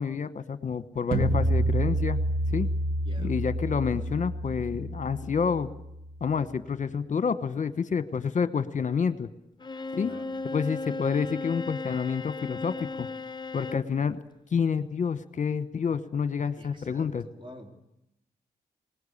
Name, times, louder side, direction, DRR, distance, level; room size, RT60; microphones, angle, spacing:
voice 1, 0.0-2.2 2.5-2.7 3.2-5.7 6.2-9.3 9.9-10.1 10.5-13.1 13.5-14.2 14.5-17.2, left 6 dB, 45° left, 13 dB, 1.2 m, -28 dB
sound 1, 1.1-6.1, right 1 dB, 60° right, 2.0 m, -28 dB
voice 2, 3.0-3.3 10.0-10.3 16.6-17.7, equal, 30° right, 3 dB, 3.9 m, -47 dB
Bowed string instrument, 9.6-13.9, left 3 dB, 25° left, 0.8 m, -36 dB
19.5 x 18.5 x 8.5 m, 0.82 s
cardioid pair, 55°, 17 cm